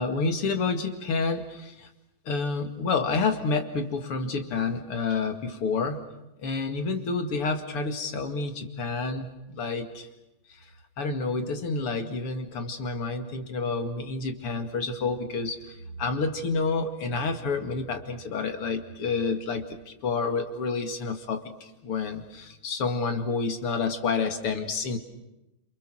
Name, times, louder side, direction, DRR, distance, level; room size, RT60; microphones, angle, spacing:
voice 1, 0.0-1.9 2.3-6.0 6.4-10.1 10.5-10.6 11.0-25.0, left 4 dB, 90° left, 6 dB, 3.2 m, -29 dB
28.0 x 28.0 x 6.3 m, 0.91 s
omnidirectional pair, 2.4 m